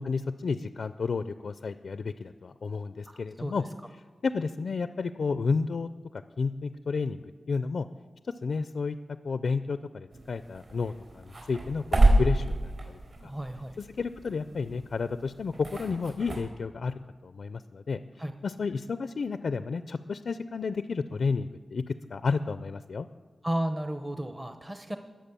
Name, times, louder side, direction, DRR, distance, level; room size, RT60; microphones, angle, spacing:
voice 1, 0.0-3.6 4.2-7.9 8.4-9.0 9.2-13.3 13.8-16.9 17.2-23.1, left 4 dB, 70° left, 12 dB, 0.4 m, -32 dB
voice 2, 3.1-3.5 13.2-13.8 18.2-18.3 23.4-25.0, right 1 dB, 15° right, 8 dB, 0.7 m, -33 dB
sound 1, 10.1-16.4, right 1 dB, 60° right, 4.3 m, -29 dB
20.5 x 7.6 x 6.9 m, 1.4 s
wide cardioid pair, 110°, 0 cm